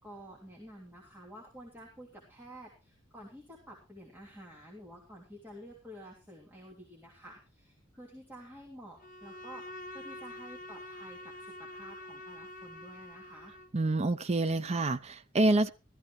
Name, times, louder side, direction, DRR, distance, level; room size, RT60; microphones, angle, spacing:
voice 1, 0.0-13.5, equal, 10° right, 3.1 m, -50 dB
Bowed string instrument, 9.0-13.8, left 1 dB, 45° left, 1.3 m, -46 dB
voice 2, 13.7-15.7, right 2 dB, 35° right, 0.6 m, -27 dB
15.0 x 14.0 x 3.2 m
head